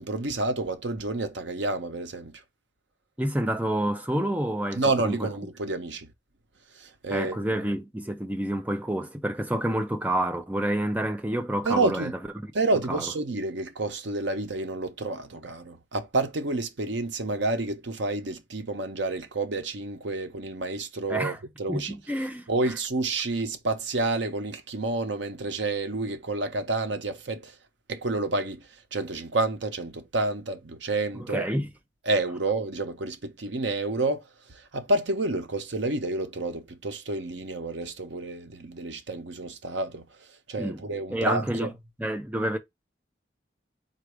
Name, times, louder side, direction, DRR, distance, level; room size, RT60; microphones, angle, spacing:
voice 1, 0.0-2.4 4.7-6.1 6.8-7.6 11.6-12.1 12.5-21.9 22.5-27.5 27.9-28.6 28.9-31.4 32.1-34.2 34.5-40.1 40.5-41.7, right 2 dB, 80° right, 0.8 m, -29 dB
voice 2, 3.2-5.3 7.1-12.5 12.9-13.1 21.1-21.4 21.7-22.8 31.1-31.7 40.6-40.8 41.1-41.7 42.0-42.6, right 1 dB, 10° right, 0.5 m, -28 dB
4.0 x 2.5 x 4.7 m
head